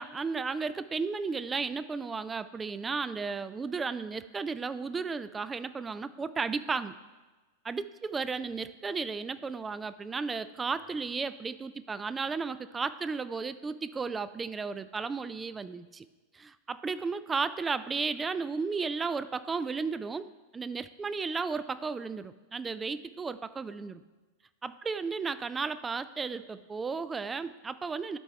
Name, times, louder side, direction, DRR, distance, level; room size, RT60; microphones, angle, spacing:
voice 1, 0.0-7.0 7.7-16.1 16.3-24.0 24.6-28.2, right 4 dB, 15° right, 14 dB, 0.3 m, -34 dB
12.0 x 4.6 x 3.3 m, 1.2 s
figure-of-eight pair, 90°, 0 cm